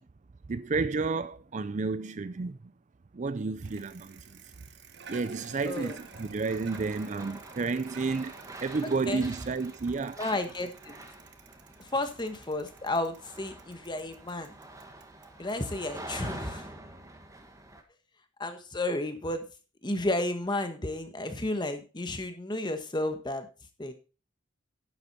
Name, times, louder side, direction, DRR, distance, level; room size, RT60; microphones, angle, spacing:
voice 1, 0.5-2.7 3.1-4.4 5.1-8.3 8.6-10.2, right 4 dB, 40° right, 0.4 m, -31 dB
Bicycle, 3.6-16.7, right 6 dB, 60° right, 1.3 m, -52 dB
voice 2, 5.6-6.0 8.8-9.3 10.2-10.9 11.8-14.5 15.4-16.7 18.4-19.5 19.8-23.5 23.8-23.9, left 2 dB, 20° left, 1.3 m, -32 dB
sound 1, 5.7-17.8, right 1 dB, 15° right, 1.4 m, -47 dB
10.5 x 7.9 x 4.2 m
head